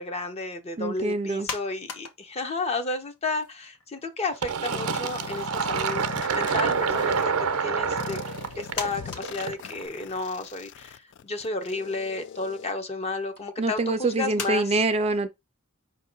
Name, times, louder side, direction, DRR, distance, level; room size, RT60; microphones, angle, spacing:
voice 1, 0.0-6.0 6.3-8.2 8.6-14.8, left 3 dB, 30° left, 0.7 m, -32 dB
voice 2, 0.8-1.5 13.6-15.3, right 2 dB, 25° right, 0.4 m, -25 dB
sound 1, 1.4-2.7 3.0-4.3 4.6-4.7 5.6-6.0 6.8-7.2 8.0-8.1 8.7-10.2 10.7-10.8 11.2-11.8 12.6-12.8 13.4-13.5 14.4-14.5, left 5 dB, 75° left, 0.9 m, -38 dB
Fill (with liquid), 4.4-9.8, right 6 dB, 80° right, 0.6 m, -27 dB
sound 2, 4.7-7.2 8.0-12.7, left 8 dB, 55° left, 0.3 m, -40 dB
5.1 x 2.7 x 3.8 m
head